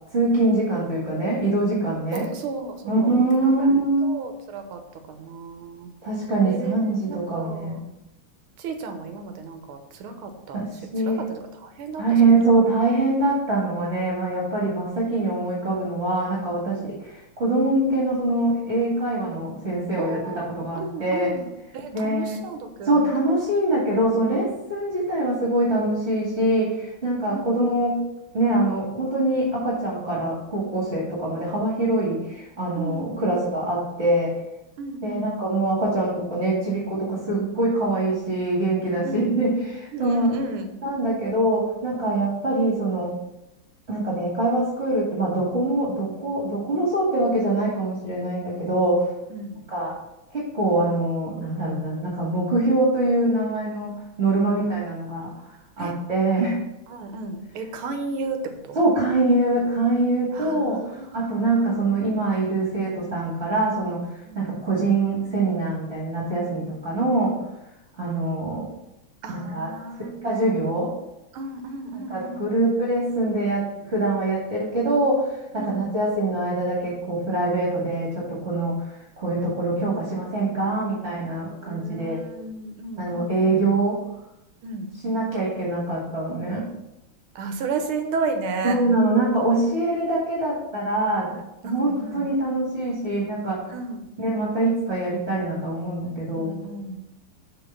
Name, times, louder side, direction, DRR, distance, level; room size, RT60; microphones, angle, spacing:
voice 1, 0.1-2.3 2.8-4.1 6.0-7.8 10.5-11.2 12.0-21.3 21.9-22.4 22.8-28.0 28.3-34.3 35.0-40.3 40.8-43.1 43.9-49.1 49.7-49.9 50.3-53.9 54.2-55.3 55.8-56.6 58.7-64.0 64.3-67.4 68.0-68.7 69.3-69.7 70.0-70.9 72.1-78.8 79.2-82.2 83.0-84.0 85.0-86.7 88.6-91.3 91.6-93.6 94.2-96.6, right 2 dB, 30° right, -6 dB, 2.3 m, -24 dB
voice 2, 2.1-3.2 3.4-3.7 4.0-4.8 5.1-5.9 6.5-7.8 8.6-10.6 11.1-12.0 16.6-16.9 20.0-21.5 21.7-23.1 27.0-27.6 29.3-29.5 32.8-33.3 34.8-35.3 39.0-39.6 39.9-40.7 49.3-49.6 54.4-54.6 55.8-56.0 56.9-58.8 60.3-61.8 64.2-64.5 69.2-70.5 71.3-72.5 75.6-75.9 79.8-81.0 81.5-83.6 84.6-84.9 87.4-88.8 91.2-92.3 93.7-94.1 96.3-97.0, right 3 dB, 75° right, 6 dB, 1.8 m, -34 dB
7.1 x 4.6 x 5.7 m, 0.89 s
omnidirectional pair, 2.4 m